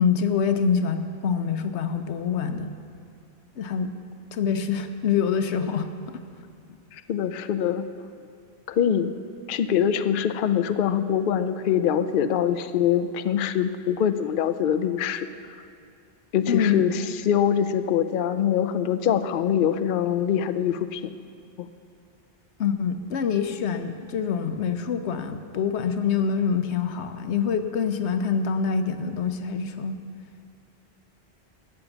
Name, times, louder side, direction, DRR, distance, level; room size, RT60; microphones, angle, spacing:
voice 1, 0.0-2.7 3.6-3.9 4.3-5.9 16.5-16.8 22.6-30.0, left 6 dB, 85° left, 8 dB, 1.1 m, -25 dB
voice 2, 6.9-7.9 8.7-9.1 9.5-15.3 16.3-21.1, left 9 dB, 60° left, 11 dB, 0.7 m, -24 dB
13.0 x 9.1 x 7.1 m, 2.4 s
omnidirectional pair, 1.1 m